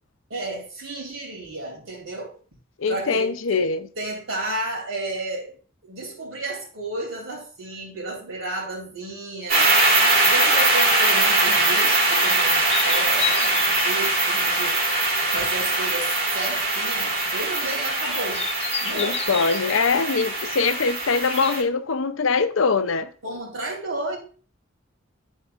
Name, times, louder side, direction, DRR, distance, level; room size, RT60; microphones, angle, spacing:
voice 1, 0.3-2.3 2.8-3.6 4.0-5.5 5.8-9.7 10.2-14.8 15.3-18.5 18.8-19.4 23.2-24.2, right 2 dB, 80° right, 2.9 m, -32 dB
voice 2, 2.8-3.8 18.9-23.1, left 4 dB, 75° left, 0.6 m, -23 dB
sound 1, 9.5-21.6, right 2 dB, 50° right, 2.0 m, -22 dB
sound 2, 12.6-21.7, left 6 dB, 30° left, 0.7 m, -35 dB
11.5 x 4.5 x 2.5 m
head